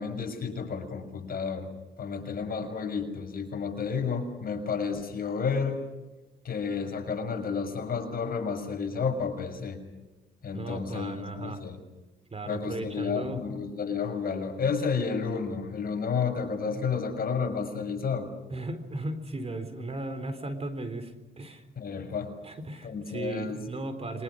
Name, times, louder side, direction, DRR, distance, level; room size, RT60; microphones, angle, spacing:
voice 1, 0.0-1.7 2.0-5.8 6.4-9.8 10.4-11.8 12.5-18.3 21.8-22.3 22.8-23.6, left 5 dB, 50° left, 5 dB, 6.6 m, -31 dB
voice 2, 10.5-11.6 12.3-13.4 18.5-21.6 22.4-24.2, right 2 dB, 30° right, 10 dB, 4.0 m, -36 dB
27.5 x 25.0 x 6.5 m, 1.1 s
cardioid pair, 90°, 20 cm